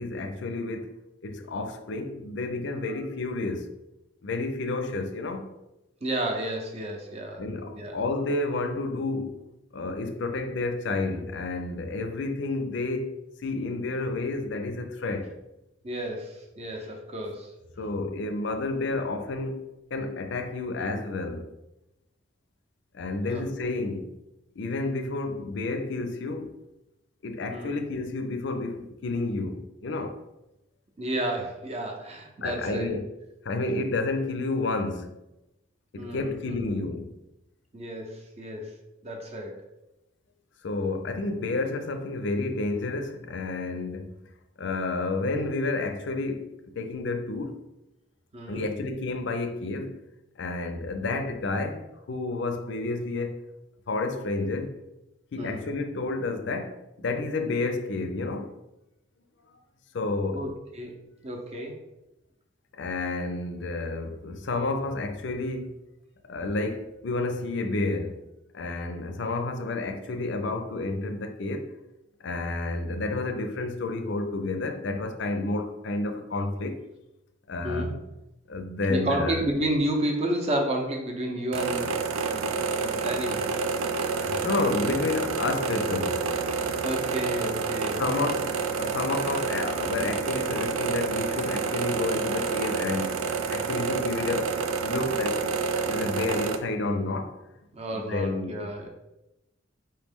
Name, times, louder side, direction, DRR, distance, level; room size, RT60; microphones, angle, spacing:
voice 1, 0.0-3.7 4.2-5.5 7.4-9.4 9.7-15.4 17.8-21.5 22.9-24.2 24.6-26.6 27.2-30.2 32.4-33.1 33.4-35.1 35.9-37.2 40.6-44.1 44.6-47.6 48.5-50.0 50.4-53.4 53.9-54.7 55.3-58.6 59.9-60.5 62.7-65.8 66.2-68.2 68.5-71.7 72.2-76.8 77.5-78.0 78.5-79.4 84.2-86.8 88.0-95.5 95.8-97.4 97.9-98.9, left 3 dB, 60° left, 0.5 m, -30 dB
voice 2, 6.0-7.5 7.7-8.0 15.8-17.5 23.3-23.5 27.5-27.8 31.0-33.0 36.0-36.7 37.7-38.7 39.0-39.6 48.3-48.7 55.4-55.6 60.3-61.8 77.6-77.9 78.9-82.6 82.8-83.5 86.8-88.0 97.7-98.9, right 1 dB, 30° right, 0.7 m, -31 dB
sound 1, 81.5-96.6, right 4 dB, 90° right, 0.4 m, -28 dB
4.4 x 3.1 x 3.5 m
head